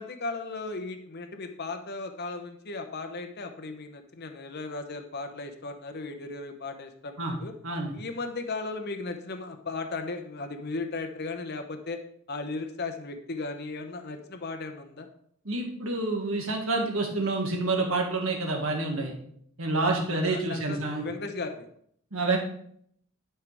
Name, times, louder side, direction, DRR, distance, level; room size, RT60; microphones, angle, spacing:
voice 1, 0.0-7.5 7.9-12.0 12.3-15.1 20.1-21.7, left 3 dB, 50° left, 6 dB, 0.9 m, -36 dB
voice 2, 15.5-19.1 19.6-21.0 22.1-22.4, right 2 dB, 65° right, 1 dB, 2.0 m, -28 dB
11.5 x 5.7 x 3.6 m, 0.65 s
head